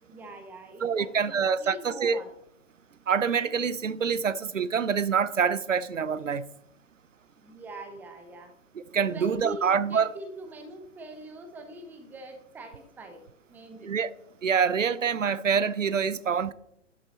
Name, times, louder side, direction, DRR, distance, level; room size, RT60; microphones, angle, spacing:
voice 1, 0.0-2.3 7.4-8.5 9.0-13.2 13.5-13.9, right 2 dB, 5° right, 0.7 m, -42 dB
voice 2, 0.8-2.2 3.1-6.5 8.7-10.1 13.8-14.1 14.4-16.5, right 6 dB, 80° right, 0.6 m, -26 dB
11.5 x 6.1 x 4.0 m
figure-of-eight pair, 115°, 38 cm